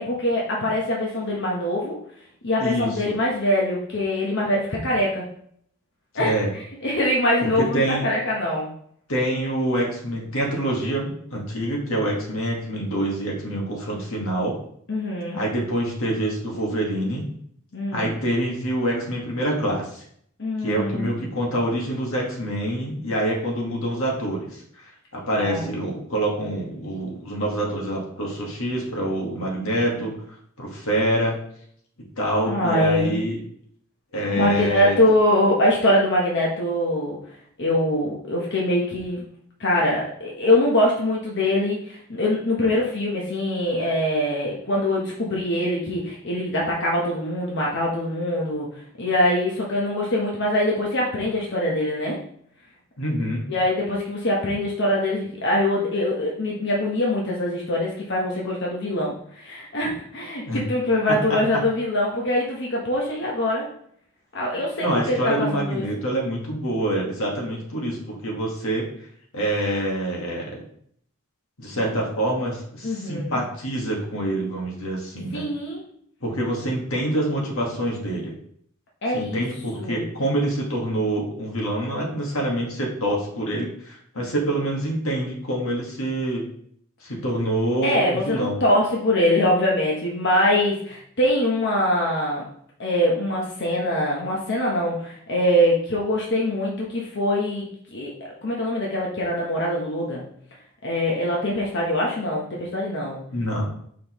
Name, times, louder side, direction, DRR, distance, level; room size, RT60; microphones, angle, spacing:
voice 1, 0.0-2.0 2.4-5.3 6.1-8.7 14.9-15.4 17.7-18.2 20.4-21.1 25.3-25.8 32.4-33.2 34.3-37.2 37.6-39.2 39.6-48.7 49.0-52.2 53.5-63.7 64.3-65.9 72.8-73.4 75.3-75.8 79.0-79.4 79.8-80.0 87.8-92.5 92.8-97.7 97.9-98.1 98.4-100.2 100.8-103.2, left 1 dB, 55° left, -3 dB, 1.1 m, -23 dB
voice 2, 2.6-3.1 6.1-6.5 7.4-8.1 9.1-14.6 15.3-17.3 17.9-20.0 20.6-24.9 25.1-30.1 30.6-31.4 32.2-33.4 34.1-35.0 53.0-53.5 60.4-60.6 61.1-61.4 64.8-68.8 69.3-70.6 71.6-75.5 76.2-78.3 79.1-86.4 87.0-88.6 103.3-103.6, right 1 dB, 80° left, -2 dB, 1.7 m, -26 dB
6.1 x 5.2 x 3.0 m, 0.65 s
head